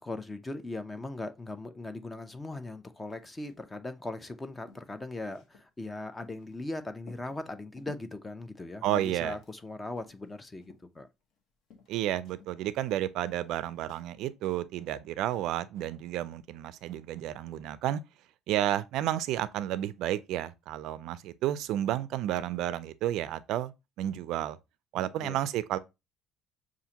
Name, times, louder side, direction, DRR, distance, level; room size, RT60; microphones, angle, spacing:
voice 1, 0.0-11.1 24.9-25.4, left 2 dB, 15° left, 0.4 m, -39 dB
sound 1, 3.1-3.7 4.0-4.1 4.4-6.6 7.0-8.2 8.7-9.7 10.0-11.4 11.7-12.9 13.3-14.1, left 5 dB, 55° left, 0.9 m, -57 dB
voice 2, 8.8-9.4 11.9-18.0 18.5-23.7 24.0-24.6 24.9-25.8, right 12 dB, 65° right, 0.3 m, -31 dB
6.7 x 2.5 x 2.8 m
cardioid pair, 155°, 0 cm